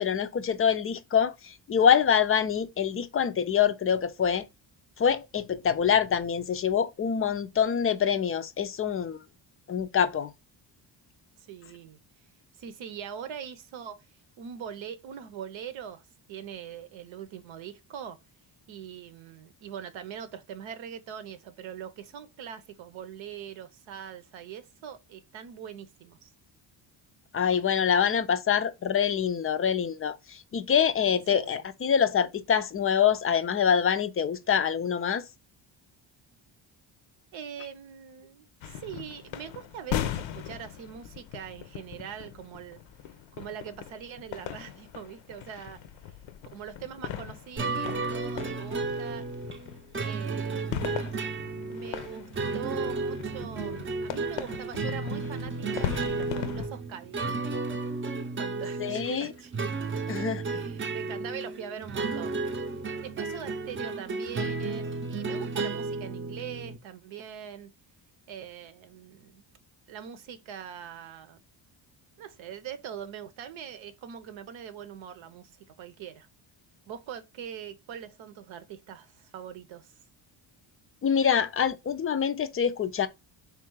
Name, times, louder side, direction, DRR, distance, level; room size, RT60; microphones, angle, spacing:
voice 1, 0.0-4.5 5.0-9.2 9.7-10.3 27.3-35.2 58.8-59.3 60.1-60.4 81.0-83.1, left 7 dB, 30° left, 0.4 m, -25 dB
voice 2, 11.4-12.0 12.6-14.1 14.4-18.2 18.7-26.3 27.8-27.9 31.3-31.6 37.3-42.8 43.3-45.8 46.5-49.2 50.0-51.0 51.7-57.3 58.4-59.7 60.4-62.4 63.0-67.7 68.3-69.4 69.9-71.4 72.2-76.3 76.9-79.9, right 8 dB, 75° right, 0.8 m, -42 dB
sound 1, 38.6-56.7, left 10 dB, 70° left, 0.6 m, -39 dB
sound 2, 47.6-66.8, right 3 dB, 25° right, 0.6 m, -33 dB
3.6 x 2.4 x 4.5 m
cardioid pair, 95°, 47 cm